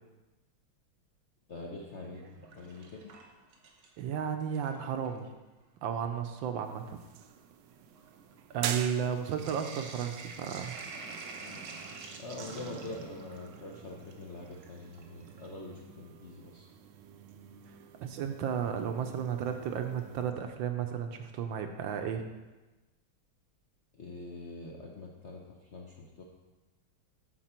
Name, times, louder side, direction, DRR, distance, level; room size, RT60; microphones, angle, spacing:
voice 1, 1.5-2.3 2.5-3.1 11.4-11.6 12.2-16.7 23.9-26.2, left 2 dB, 55° left, -2 dB, 0.7 m, -44 dB
Sink (filling or washing), 2.0-4.1 4.4-5.2 6.0-6.1 6.4-15.5 17.3-17.4 19.2-19.6 20.0-20.1 20.3-20.4, right 4 dB, 55° right, 1.3 m, -48 dB
voice 2, 4.0-5.3 5.8-7.0 8.5-10.7 18.0-22.3, right 8 dB, 70° right, 6 dB, 1.3 m, -33 dB
sound 1, 6.6-20.3, right 8 dB, 85° right, 1.5 m, -47 dB
13.5 x 4.9 x 4.4 m, 1.1 s
omnidirectional pair, 2.3 m